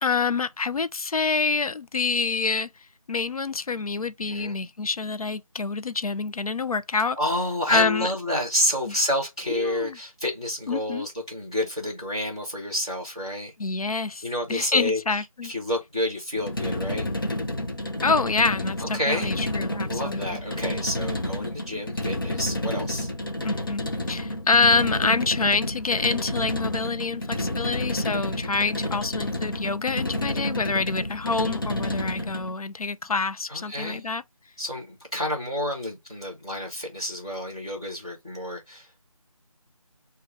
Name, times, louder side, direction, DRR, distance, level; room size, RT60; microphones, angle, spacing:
voice 1, 0.0-2.7 3.1-7.2 7.7-8.1 8.9-9.0 9.5-10.0 10.7-11.1 13.6-14.2 14.5-15.5 18.0-20.4 23.4-34.2, left 4 dB, 85° left, 0.5 m, -26 dB
voice 2, 7.2-13.5 14.2-17.1 18.8-19.3 19.9-23.1 33.5-34.1 34.6-38.9, left 1 dB, 10° left, 0.8 m, -29 dB
sound 1, 16.4-32.5, left 1 dB, 35° left, 0.6 m, -30 dB
4.5 x 2.3 x 3.3 m
figure-of-eight pair, 165°, 18 cm